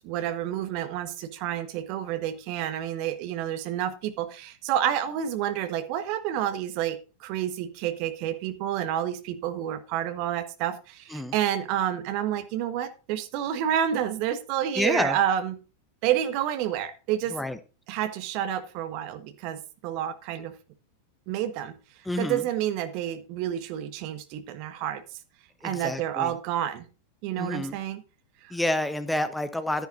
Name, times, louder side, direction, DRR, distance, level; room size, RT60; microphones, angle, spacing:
voice 1, 0.0-15.6 16.0-17.4 17.9-20.6 21.3-21.8 22.2-25.0 25.6-26.8 27.2-28.0 28.4-28.5, right 10 dB, 45° right, 11 dB, 1.3 m, -29 dB
voice 2, 14.8-15.1 17.3-17.6 22.1-22.4 25.6-26.3 27.4-27.8 28.5-29.9, left 1 dB, 5° left, 11 dB, 0.9 m, -28 dB
13.0 x 10.5 x 2.6 m, 0.33 s
figure-of-eight pair, 90°, 0 cm